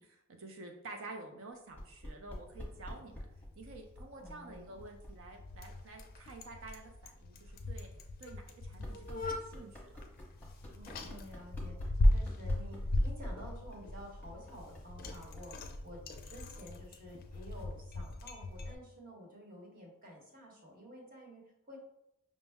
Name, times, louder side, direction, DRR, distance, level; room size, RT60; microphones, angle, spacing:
voice 1, 0.0-3.3 3.6-7.9 8.2-9.9, right 2 dB, 65° right, 3 dB, 0.5 m, -50 dB
sound 1, 1.7-17.8, left 1 dB, 10° left, 0.8 m, -52 dB
Bicycle, 2.4-18.7, left 1 dB, 45° left, 0.4 m, -37 dB
voice 2, 4.2-4.9 10.7-21.8, equal, 45° right, -1 dB, 1.0 m, -51 dB
5.3 x 2.0 x 3.4 m, 0.83 s
head